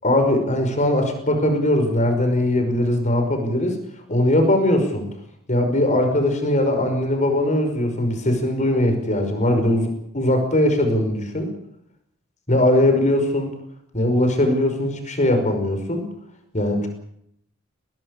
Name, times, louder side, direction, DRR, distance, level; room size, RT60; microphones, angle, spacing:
voice 1, 0.0-3.8 4.1-5.0 5.5-11.5 12.5-13.5 13.9-16.1 16.5-16.9, left 1 dB, 35° left, 6 dB, 5.5 m, -20 dB
21.0 x 19.5 x 8.4 m, 0.73 s
head